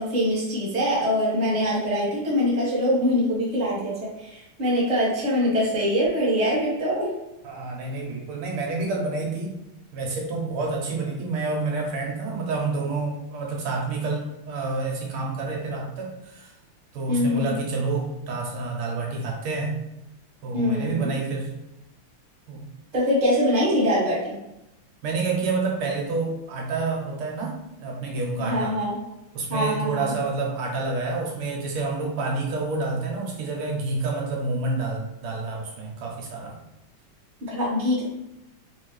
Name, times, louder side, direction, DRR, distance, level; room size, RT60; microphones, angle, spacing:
voice 1, 0.0-7.1 17.1-17.5 20.5-21.1 22.9-24.3 28.4-29.0 29.5-30.1 37.5-38.0, equal, 25° right, -5 dB, 1.0 m, -23 dB
voice 2, 7.4-9.6 9.9-16.5 16.9-19.7 20.4-21.5 22.5-22.6 25.0-28.8 29.3-36.6, right 3 dB, 80° right, -1 dB, 1.7 m, -28 dB
4.0 x 2.7 x 3.1 m, 0.91 s
omnidirectional pair, 2.4 m